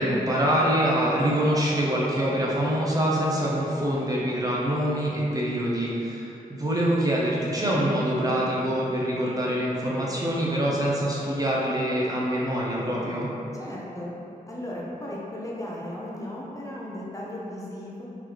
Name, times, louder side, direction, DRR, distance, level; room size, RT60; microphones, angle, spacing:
voice 1, 0.0-13.3, equal, 25° right, -5 dB, 0.5 m, -25 dB
voice 2, 13.5-14.1 14.5-18.0, left 1 dB, 20° left, -5 dB, 0.5 m, -36 dB
3.8 x 3.1 x 2.9 m, 2.9 s
wide cardioid pair, 135°, 15 cm